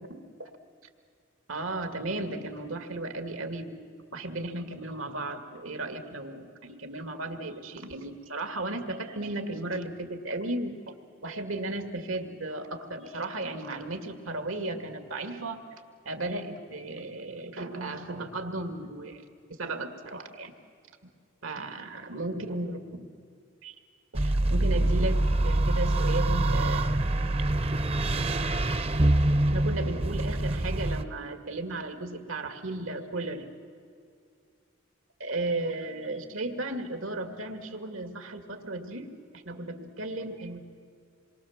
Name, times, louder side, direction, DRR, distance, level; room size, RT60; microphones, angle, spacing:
voice 1, 0.1-0.5 1.5-3.7 4.1-10.9 11.2-15.6 16.1-19.2 19.6-20.5 21.4-23.1 23.6-23.7 24.1-27.0 29.5-33.5 35.2-40.6, right 2 dB, 90° right, 7 dB, 2.2 m, -35 dB
sound 1, 24.1-31.0, right 1 dB, 30° right, 0.5 m, -25 dB
27.5 x 23.5 x 7.3 m, 2.3 s
head